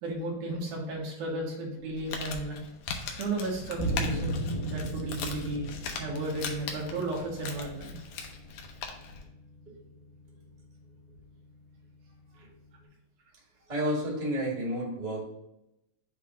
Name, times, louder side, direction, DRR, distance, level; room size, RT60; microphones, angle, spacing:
voice 1, 0.0-2.6 3.2-7.9, right 2 dB, 80° right, -3 dB, 3.0 m, -34 dB
Crumpling crinkling, 1.8-9.2, left 5 dB, 75° left, 1.6 m, -40 dB
sound 1, 3.8-12.8, right 1 dB, 60° left, 2.1 m, -38 dB
voice 2, 13.7-15.2, equal, 20° right, -4 dB, 1.3 m, -31 dB
7.3 x 2.5 x 5.3 m, 0.86 s
omnidirectional pair, 3.5 m